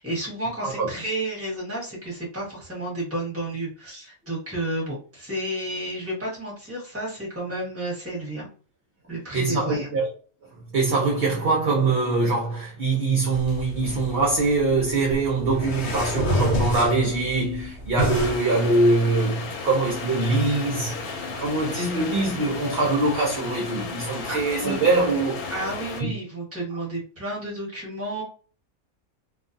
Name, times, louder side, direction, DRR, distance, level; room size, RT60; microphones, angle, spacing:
voice 1, 0.0-8.5 9.1-9.9 24.3-24.4 25.5-28.2, right 1 dB, 10° right, 1.0 m, -31 dB
voice 2, 9.3-10.1 10.7-21.0 21.4-25.4 26.0-26.1, right 3 dB, 60° right, 0.7 m, -23 dB
sound 1, 13.3-18.4, equal, 60° left, 0.8 m, -29 dB
sound 2, 18.1-26.0, left 4 dB, 90° left, 1.1 m, -34 dB
2.5 x 2.3 x 2.5 m
omnidirectional pair, 1.5 m